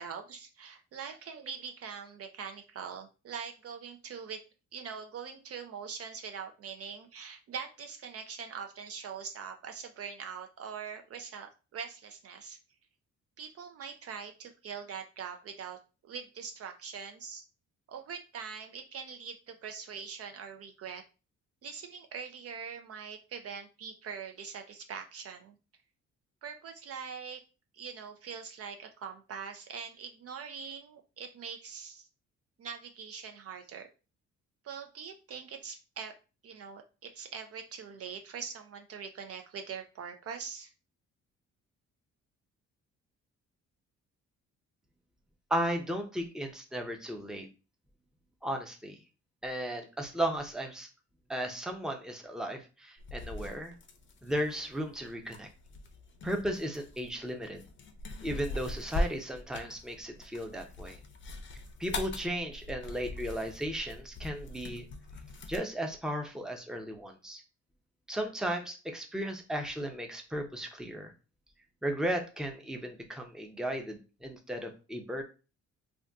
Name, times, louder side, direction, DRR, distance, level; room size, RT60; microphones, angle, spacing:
voice 1, 0.0-4.4 4.7-12.6 13.4-17.5 17.9-21.0 21.6-25.5 26.4-27.4 27.7-32.1 32.6-33.9 34.6-36.1 36.4-40.7, right 6 dB, 50° right, 5 dB, 0.5 m, -43 dB
voice 2, 45.5-47.5 48.4-49.0 49.4-50.9 51.3-53.7 54.2-55.5 56.2-57.6 58.2-61.0 61.8-64.8 65.5-67.4 68.1-71.1 71.8-75.2, equal, ahead, 3 dB, 0.6 m, -35 dB
sound 1, 53.0-65.6, left 2 dB, 40° left, 0.6 m, -41 dB
2.5 x 2.3 x 3.4 m, 0.32 s
cardioid pair, 90°, 30 cm